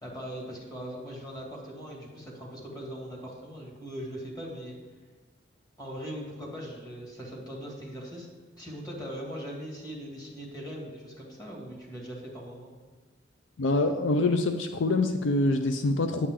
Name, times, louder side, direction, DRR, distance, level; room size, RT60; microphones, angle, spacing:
voice 1, 0.0-4.7 5.8-8.3 8.6-12.7, equal, 20° left, -3 dB, 2.4 m, -40 dB
voice 2, 13.6-16.3, left 2 dB, 75° left, 7 dB, 0.5 m, -25 dB
9.7 x 8.5 x 3.7 m, 1.3 s
head